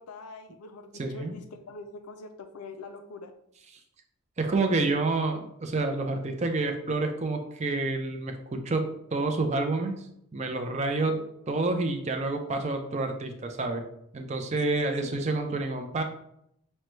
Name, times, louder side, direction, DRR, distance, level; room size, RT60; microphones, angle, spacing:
voice 1, 0.0-3.3 11.0-11.2 14.6-15.3, left 3 dB, 90° left, 7 dB, 0.4 m, -43 dB
voice 2, 0.9-1.3 4.4-10.0 10.3-11.1 11.5-13.8 14.1-16.0, right 3 dB, 30° right, 5 dB, 0.4 m, -28 dB
6.2 x 2.2 x 3.1 m, 0.76 s
head